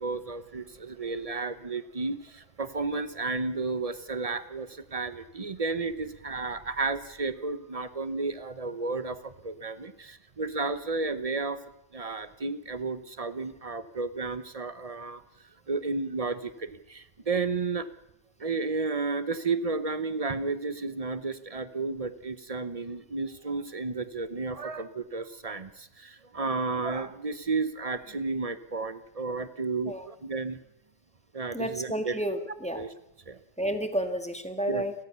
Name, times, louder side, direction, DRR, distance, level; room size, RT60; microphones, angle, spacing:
voice 1, 0.0-11.6 11.9-15.2 15.7-17.9 18.4-30.6 31.3-32.2 32.8-32.9 33.3-33.4 34.7-34.9, right 3 dB, 50° right, 12 dB, 0.4 m, -32 dB
voice 2, 31.5-32.8 33.6-34.9, right 1 dB, 5° left, 7 dB, 1.6 m, -31 dB
29.5 x 13.5 x 6.9 m, 0.84 s
omnidirectional pair, 2.0 m